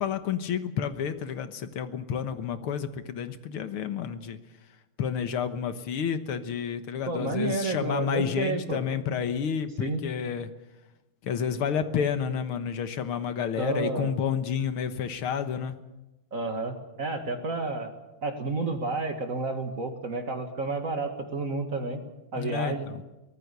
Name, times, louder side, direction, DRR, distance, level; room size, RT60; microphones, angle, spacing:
voice 1, 0.0-4.4 5.0-10.5 11.2-15.8 22.4-23.0, left 7 dB, 80° left, 9 dB, 2.1 m, -30 dB
voice 2, 7.1-8.8 9.8-10.0 13.6-14.1 16.3-17.9 18.2-22.0 22.3-22.9, right 3 dB, 40° right, 6 dB, 2.1 m, -30 dB
24.0 x 18.0 x 6.9 m, 1.0 s
omnidirectional pair, 2.3 m